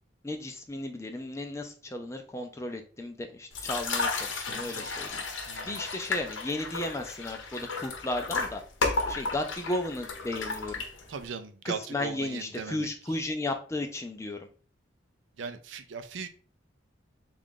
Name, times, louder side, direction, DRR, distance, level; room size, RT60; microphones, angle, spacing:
voice 1, 0.2-8.6 9.1-10.8 11.6-14.5, left 2 dB, 15° left, 0.4 m, -34 dB
sound 1, 3.5-11.3, left 3 dB, 85° left, 0.7 m, -33 dB
voice 2, 5.5-5.8 11.1-12.9 15.4-16.3, right 5 dB, 80° right, 0.4 m, -38 dB
3.7 x 2.4 x 3.6 m
head